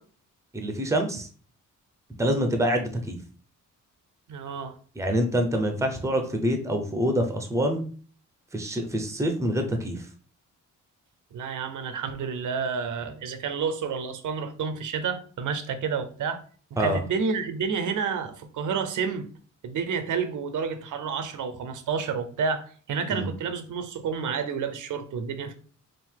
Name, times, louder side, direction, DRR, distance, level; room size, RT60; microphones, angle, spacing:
voice 1, 0.5-1.3 2.2-3.2 5.0-7.8 8.5-10.0 16.8-17.0 23.1-23.3, equal, 10° right, 0.6 m, -26 dB
voice 2, 4.3-4.8 11.3-16.4 16.8-19.3 19.6-25.5, right 6 dB, 70° right, 0.6 m, -30 dB
3.7 x 2.5 x 4.5 m
wide cardioid pair, 140°, 32 cm